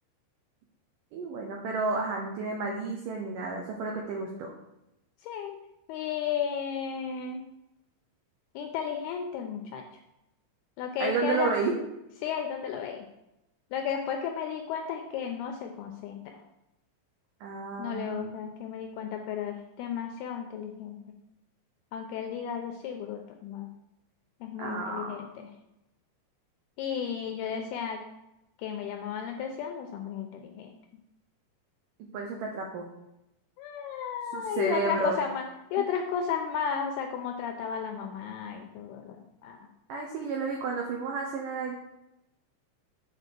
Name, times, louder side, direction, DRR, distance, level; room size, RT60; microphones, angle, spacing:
voice 1, 1.1-4.5 11.0-11.8 17.4-18.3 24.6-25.2 32.0-32.9 34.3-35.2 35.8-35.9 39.9-41.7, right 4 dB, 85° right, 1 dB, 1.9 m, -31 dB
voice 2, 5.2-5.6 5.9-7.4 8.6-9.8 10.8-11.6 12.2-13.1 13.7-16.4 17.8-21.0 21.9-23.7 24.4-25.5 26.8-28.0 28.6-30.7 33.6-35.4 35.7-39.7, left 7 dB, 80° left, 3 dB, 2.3 m, -33 dB
7.3 x 4.2 x 6.7 m, 0.89 s
omnidirectional pair, 5.1 m